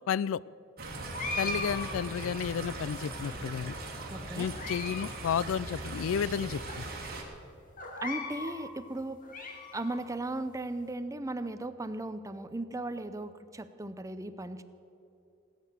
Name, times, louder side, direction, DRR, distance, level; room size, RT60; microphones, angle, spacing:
voice 1, 0.1-0.4 1.4-3.7 4.4-6.8, left 7 dB, 70° left, 21 dB, 0.3 m, -32 dB
sound 1, 0.8-7.2, right 2 dB, 50° right, 2.5 m, -40 dB
sound 2, 1.1-2.6 3.2-3.9 4.4-5.1 5.4-5.5 6.2-6.3 6.7-6.8 7.8-8.6 9.0-10.0, left 2 dB, 40° left, 2.0 m, -39 dB
voice 2, 4.1-4.5 8.0-9.2 9.7-14.6, right 2 dB, 15° right, 11 dB, 0.6 m, -37 dB
18.5 x 9.4 x 6.6 m, 2.8 s
head